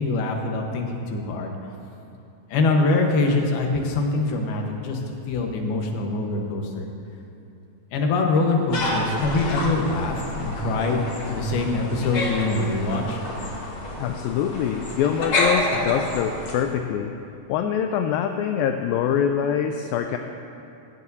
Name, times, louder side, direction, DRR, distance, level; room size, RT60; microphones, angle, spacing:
voice 1, 0.0-1.5 2.5-5.0 5.3-6.9 7.9-13.2, left 3 dB, 75° left, 1 dB, 3.0 m, -24 dB
sound 1, 8.7-16.5, left 1 dB, 40° left, 2.2 m, -29 dB
voice 2, 14.0-17.1 17.5-20.2, left 8 dB, 90° left, 5 dB, 2.0 m, -24 dB
16.5 x 15.0 x 2.7 m, 2.7 s
omnidirectional pair, 4.6 m